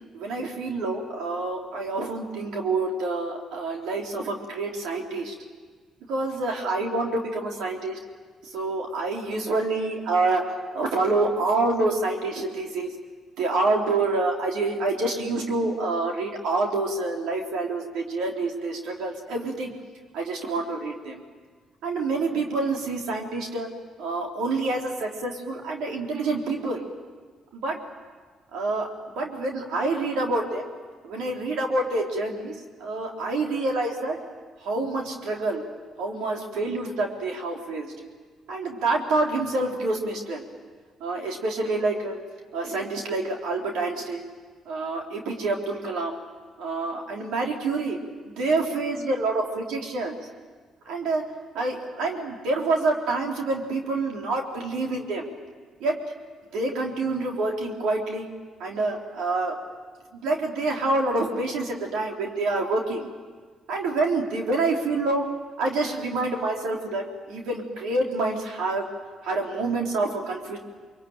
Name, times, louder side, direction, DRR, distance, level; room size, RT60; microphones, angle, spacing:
voice 1, 0.1-5.3 6.1-8.0 8.4-10.4 10.7-12.9 13.4-19.7 20.1-21.2 21.8-23.7 24.0-26.8 27.5-27.8 28.5-28.9 29.2-30.6 31.0-34.2 34.6-35.6 36.0-38.1 38.5-40.5 41.0-42.2 42.5-44.2 44.7-46.2 46.6-50.2 50.9-51.2 51.5-55.3 55.8-56.0 56.5-58.3 58.6-59.5 60.1-63.1 63.7-65.2 65.6-68.8 69.2-70.6, right 2 dB, 80° right, 1 dB, 3.6 m, -27 dB
23.5 x 22.5 x 9.0 m, 1.5 s
supercardioid pair, 65°, 0 cm